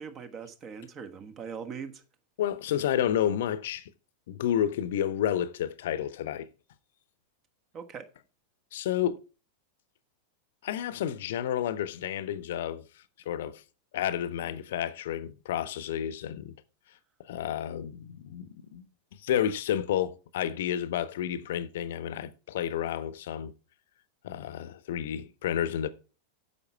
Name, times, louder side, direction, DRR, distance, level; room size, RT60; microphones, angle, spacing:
voice 1, 0.0-2.0 7.7-8.1, right 6 dB, 30° right, 1.3 m, -41 dB
voice 2, 2.4-3.9 4.3-6.5 8.7-9.2 10.6-12.8 13.3-13.6 13.9-16.5 17.3-18.9 19.2-23.5 24.2-25.9, left 10 dB, 55° left, 0.8 m, -30 dB
9.7 x 7.0 x 4.5 m
figure-of-eight pair, 90°, 0 cm